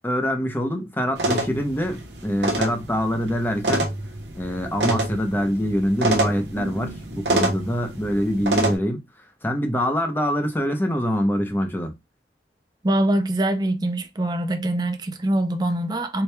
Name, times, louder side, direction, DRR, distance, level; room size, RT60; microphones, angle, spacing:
voice 1, 0.0-3.9 4.3-9.0 9.4-11.9, equal, 10° left, 0.7 m, -24 dB
sound 1, 1.1-8.7, right 1 dB, 80° right, 1.0 m, -26 dB
voice 2, 12.8-16.2, right 1 dB, 25° right, 0.4 m, -23 dB
4.5 x 2.3 x 3.3 m
head